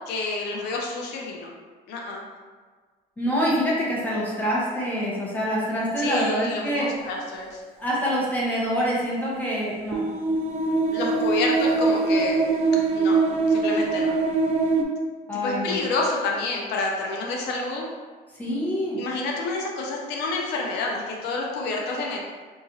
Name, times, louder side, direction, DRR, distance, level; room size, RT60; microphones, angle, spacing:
voice 1, 0.1-1.5 1.9-2.2 6.0-7.6 10.9-12.4 12.9-13.2 13.5-14.2 15.4-17.9 19.0-22.2, left 3 dB, 85° left, -1 dB, 0.5 m, -28 dB
voice 2, 3.2-6.9 7.8-10.0 15.3-15.8 18.4-19.0, equal, 10° left, -6 dB, 0.9 m, -25 dB
sound 1, 9.9-14.8, right 3 dB, 35° right, 0.3 m, -22 dB
2.9 x 2.4 x 2.6 m, 1.5 s
cardioid pair, 110°, 17 cm